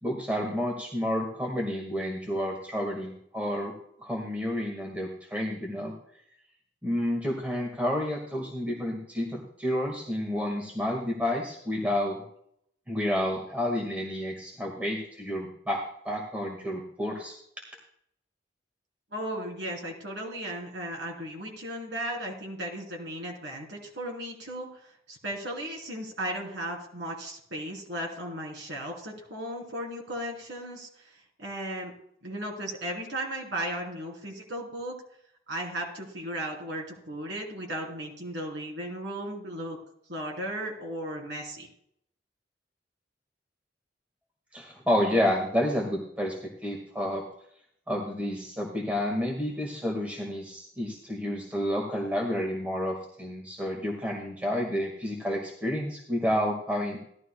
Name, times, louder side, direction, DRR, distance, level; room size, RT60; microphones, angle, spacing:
voice 1, 0.0-3.7 4.0-5.9 6.8-12.2 12.9-17.4 44.5-46.4 46.6-47.2 47.9-57.0, equal, 10° right, -1 dB, 1.7 m, -30 dB
voice 2, 19.1-31.9 32.2-35.0 35.5-39.8 40.1-41.7, right 1 dB, 80° right, -1 dB, 3.2 m, -36 dB
16.5 x 12.5 x 2.2 m, 0.70 s
head